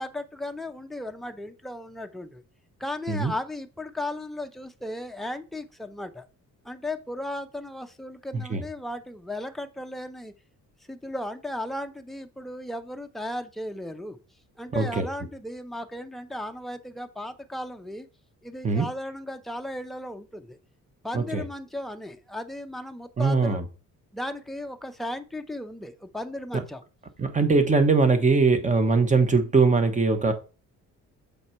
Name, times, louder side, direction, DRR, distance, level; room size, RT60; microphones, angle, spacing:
voice 1, 0.0-2.4 2.8-6.2 6.6-10.3 10.9-14.2 14.6-18.1 18.4-20.6 21.0-23.6 24.1-26.8, left 1 dB, ahead, 6 dB, 0.5 m, -35 dB
voice 2, 8.3-8.6 14.7-15.1 18.6-18.9 21.1-21.4 23.2-23.7 26.5-26.6 27.2-30.3, right 4 dB, 25° right, 9 dB, 1.0 m, -21 dB
6.7 x 4.2 x 4.4 m, 0.34 s
cardioid pair, 135°, 32 cm